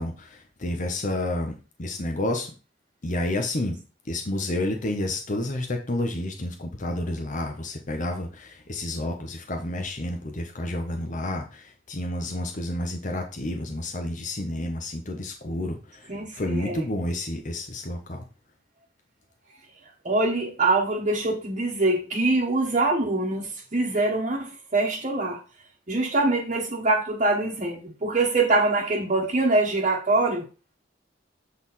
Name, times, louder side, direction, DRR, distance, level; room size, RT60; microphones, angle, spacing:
voice 1, 0.0-2.5 3.0-3.8 4.1-18.2, left 1 dB, 45° left, 4 dB, 1.0 m, -30 dB
voice 2, 16.1-16.8 20.0-25.4 25.9-30.5, right 2 dB, 40° right, -4 dB, 1.2 m, -24 dB
7.4 x 4.3 x 4.1 m, 0.34 s
head